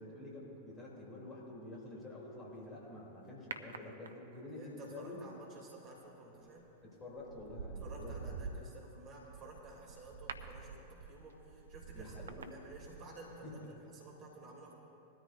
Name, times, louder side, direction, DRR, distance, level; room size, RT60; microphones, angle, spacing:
voice 1, 0.0-5.2 6.8-8.4 11.9-12.5 13.4-13.8, left 2 dB, 20° left, -4 dB, 3.1 m, -48 dB
sound 1, 3.5-4.5 6.4-6.7 7.2-13.4 13.6-13.7, right 4 dB, 70° right, 0.6 m, -47 dB
voice 2, 4.5-6.7 7.8-13.6 13.9-14.7, right 2 dB, 35° right, -2 dB, 2.9 m, -53 dB
20.5 x 13.0 x 2.6 m, 2.9 s
figure-of-eight pair, 90°, 0 cm